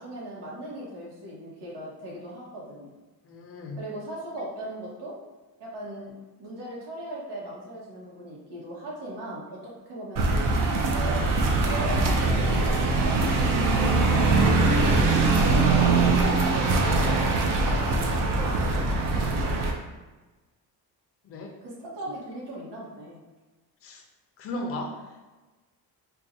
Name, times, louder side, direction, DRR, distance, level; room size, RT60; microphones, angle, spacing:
voice 1, 0.0-2.9 3.8-5.1 5.6-6.1 6.4-10.5 10.9-11.3 11.6-14.9 15.4-18.8 21.6-23.2, right 1 dB, 85° right, -6 dB, 1.2 m, -38 dB
voice 2, 3.3-3.8 15.5-15.8 21.3-21.5 23.8-24.0 24.4-25.0, left 1 dB, 35° left, 1 dB, 0.5 m, -35 dB
sound 1, 10.2-19.7, right 3 dB, 55° right, 0.6 m, -22 dB
4.5 x 2.3 x 2.6 m, 1.2 s
cardioid pair, 165°, 40 cm